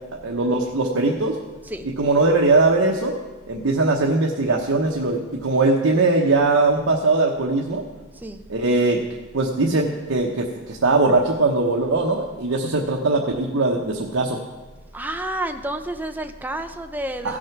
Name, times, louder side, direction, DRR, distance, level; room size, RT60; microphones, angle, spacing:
voice 1, 0.1-1.4 1.8-3.1 3.5-7.8 8.5-9.0 9.3-14.4 17.2-17.4, right 3 dB, 85° right, -1 dB, 1.0 m, -20 dB
voice 2, 14.9-17.4, right 1 dB, 10° right, 6 dB, 0.6 m, -29 dB
16.0 x 6.3 x 5.9 m, 1.3 s
head